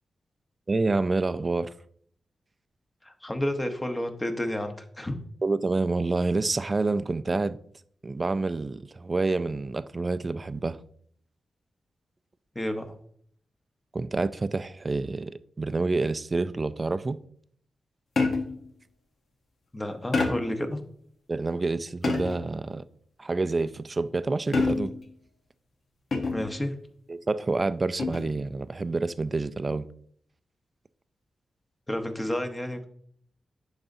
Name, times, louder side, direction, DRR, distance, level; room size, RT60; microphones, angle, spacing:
voice 1, 0.7-1.7 5.4-7.6 8.0-10.8 13.9-17.2 21.3-22.8 23.2-24.9 27.1-29.9, right 3 dB, 35° right, 0.3 m, -28 dB
voice 2, 3.0-5.1 12.5-13.0 19.7-20.8 26.3-26.7 31.9-32.9, left 1 dB, 20° left, 1.0 m, -31 dB
sound 1, 18.2-18.7 20.1-20.6 22.0-22.5 24.5-25.1 26.1-26.6 28.0-28.4, left 3 dB, 65° left, 1.0 m, -27 dB
11.0 x 4.0 x 2.7 m
cardioid pair, 65°, 0 cm